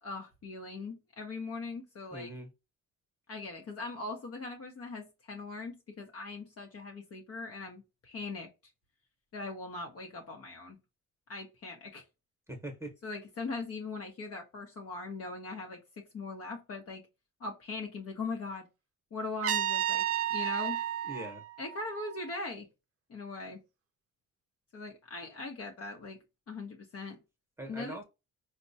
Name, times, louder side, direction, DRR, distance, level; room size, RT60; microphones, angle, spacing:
voice 1, 0.0-2.3 3.3-8.5 9.3-10.8 11.3-12.0 13.0-17.0 17.4-18.7 19.1-20.0 20.3-20.8 21.6-22.7 23.1-23.6 24.7-26.2 26.5-27.2 27.7-28.0, left 3 dB, 50° left, 0.9 m, -40 dB
voice 2, 2.1-2.5 12.5-12.9 21.0-21.4 27.6-28.0, right 1 dB, 10° right, 1.0 m, -42 dB
Trumpet, 19.4-22.4, right 11 dB, 50° right, 0.5 m, -32 dB
4.3 x 2.2 x 2.7 m
cardioid pair, 90°, 30 cm